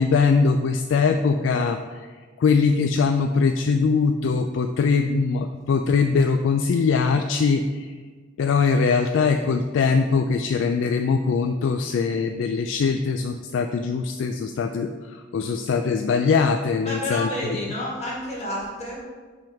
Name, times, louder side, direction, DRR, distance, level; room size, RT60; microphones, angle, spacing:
voice 1, 0.0-2.1 2.4-7.9 8.4-17.3, left 5 dB, 80° left, 6 dB, 0.3 m, -22 dB
voice 2, 16.9-19.0, left 1 dB, 35° left, -5 dB, 1.6 m, -30 dB
6.2 x 3.5 x 5.7 m, 1.4 s
head